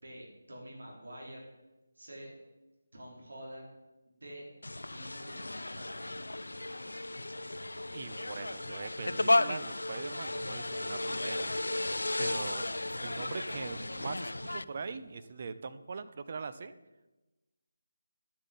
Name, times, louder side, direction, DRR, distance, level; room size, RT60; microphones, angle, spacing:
voice 1, 0.0-1.4 1.9-2.3 2.9-3.8 4.1-4.5 4.9-5.4 5.6-6.2, right 1 dB, 70° right, -3 dB, 4.4 m, -47 dB
sound 1, 4.6-14.6, left 2 dB, 80° left, 0.3 m, -34 dB
sound 2, 5.9-15.3, right 2 dB, 15° right, 1.5 m, -61 dB
voice 2, 7.9-11.5 12.2-12.7 13.0-16.7, right 5 dB, 40° right, 11 dB, 0.7 m, -42 dB
11.5 x 7.4 x 5.5 m, 1.1 s
figure-of-eight pair, 155°, 0 cm